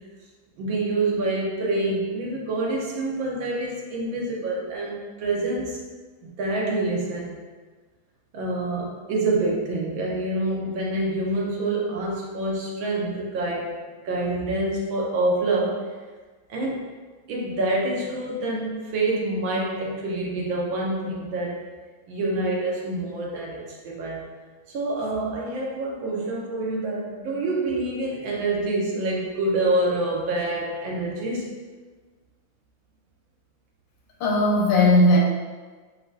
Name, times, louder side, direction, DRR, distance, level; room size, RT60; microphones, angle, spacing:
voice 1, 0.6-5.8 6.2-7.4 8.3-13.8 14.0-15.9 16.5-16.9 17.3-21.6 22.1-24.3 24.7-31.5, right 2 dB, 85° right, -3 dB, 1.7 m, -26 dB
voice 2, 34.2-35.2, left 1 dB, 75° left, -2 dB, 1.5 m, -17 dB
7.8 x 2.7 x 2.3 m, 1.4 s
omnidirectional pair, 2.1 m